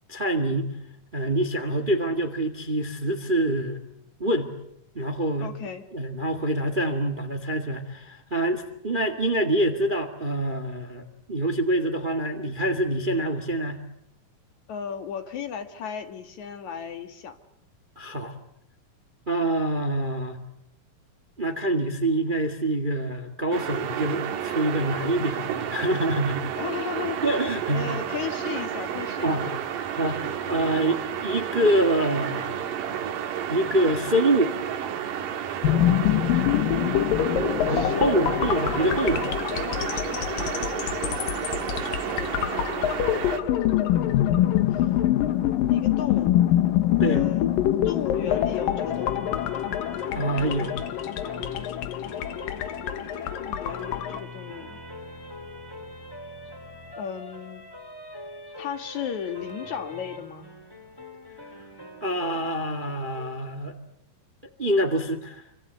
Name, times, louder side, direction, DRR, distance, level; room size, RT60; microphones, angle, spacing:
voice 1, 0.1-0.7 1.1-3.8 4.2-4.5 4.9-5.5 5.9-13.8 17.9-18.3 19.3-20.4 21.4-26.5 27.2-27.9 29.2-29.5 29.9-30.2 30.5-32.5 33.5-34.5 37.6-39.2 47.0-47.2 50.1-50.8 62.0-63.7 64.6-65.4, right 1 dB, 20° right, 8 dB, 1.4 m, -25 dB
voice 2, 5.4-5.8 14.7-17.4 26.6-27.3 27.7-29.6 37.4-38.4 41.8-43.0 44.7-44.9 45.7-46.4 47.0-47.5 47.8-49.5 53.1-54.8 57.0-57.6 58.6-60.5, left 8 dB, 60° left, 7 dB, 2.9 m, -35 dB
sound 1, 23.5-43.4, right 9 dB, 75° right, 3.1 m, -31 dB
sound 2, 35.6-54.2, left 12 dB, 80° left, 3.0 m, -25 dB
sound 3, 48.2-63.4, left 2 dB, 5° left, 2.8 m, -42 dB
28.0 x 25.0 x 8.1 m, 0.78 s
omnidirectional pair, 3.9 m